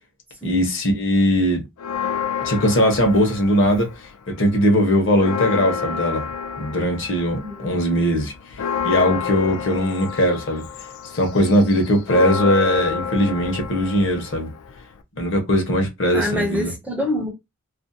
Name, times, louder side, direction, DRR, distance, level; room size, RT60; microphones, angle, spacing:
voice 1, 0.4-1.6 2.4-3.9 4.3-6.3 6.6-8.3 8.8-10.6 11.1-14.5 15.2-16.7, equal, 55° left, 0.9 m, -19 dB
Church bell, 1.8-4.2 4.5-4.6 5.0-15.0, left 7 dB, 90° left, 0.4 m, -29 dB
voice 2, 7.4-7.8 16.1-17.3, left 1 dB, 5° right, 0.5 m, -26 dB
2.5 x 2.1 x 2.6 m
head